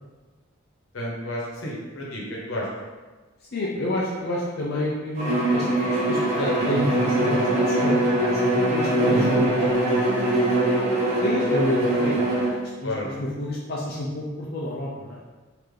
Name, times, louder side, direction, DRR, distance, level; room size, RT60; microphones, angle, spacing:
voice 1, 0.9-2.7 6.5-6.7 12.8-13.1, left 1 dB, 70° left, -4 dB, 1.0 m, -32 dB
voice 2, 3.5-9.8 10.7-12.4 12.8-15.2, left 1 dB, 50° left, -5 dB, 0.5 m, -29 dB
Bowed string instrument, 5.2-12.6, right 1 dB, 35° right, 0.8 m, -22 dB
3.4 x 2.8 x 3.7 m, 1.3 s
head